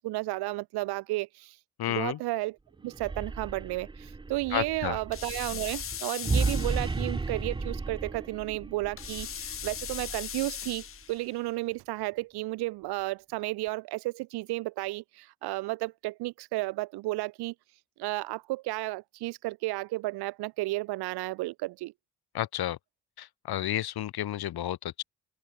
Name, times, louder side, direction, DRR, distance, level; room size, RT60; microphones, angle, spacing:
voice 1, 0.0-1.6 1.9-2.6 2.8-17.5 18.0-21.9, right 20 dB, 80° right, 0.6 m, -33 dB
voice 2, 1.8-2.2 4.5-5.0 22.3-22.8 23.2-25.0, left 12 dB, 70° left, 2.1 m, -31 dB
sound 1, 2.8-11.0, right 3 dB, 15° right, 0.6 m, -34 dB
sound 2, 5.1-7.2 9.0-11.3, left 9 dB, 35° left, 0.6 m, -39 dB
open air
supercardioid pair, 60°, 39 cm